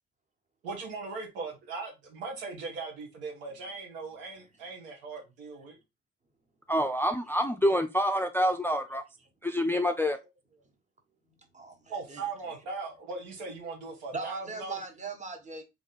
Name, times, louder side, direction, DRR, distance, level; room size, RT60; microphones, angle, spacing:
voice 1, 0.6-5.8 11.9-14.8, right 4 dB, 75° right, 1.4 m, -39 dB
voice 2, 6.7-9.0 9.4-10.2, equal, 5° left, 0.5 m, -27 dB
voice 3, 11.5-12.2 14.1-15.6, right 4 dB, 20° right, 1.4 m, -39 dB
3.7 x 3.2 x 4.1 m
hypercardioid pair, 45°, 33 cm